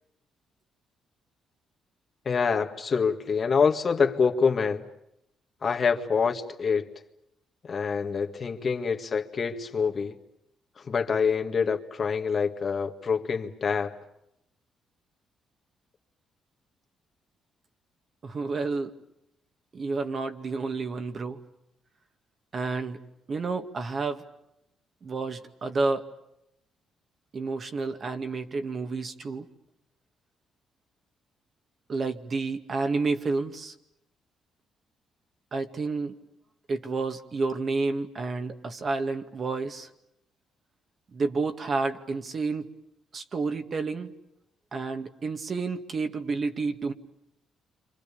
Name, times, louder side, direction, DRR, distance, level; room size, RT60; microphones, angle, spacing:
voice 1, 2.3-4.8 5.6-6.9 7.6-10.2 10.8-14.0, left 5 dB, 45° left, 1.9 m, -26 dB
voice 2, 18.2-18.9 19.7-21.4 22.5-23.0 23.3-24.2 25.0-26.1 27.3-29.5 31.9-33.7 35.5-36.2 36.7-39.9 41.1-42.7 43.1-44.1 44.7-46.9, right 3 dB, 45° right, 2.1 m, -30 dB
29.5 x 26.0 x 7.0 m
cardioid pair, 90°, 0 cm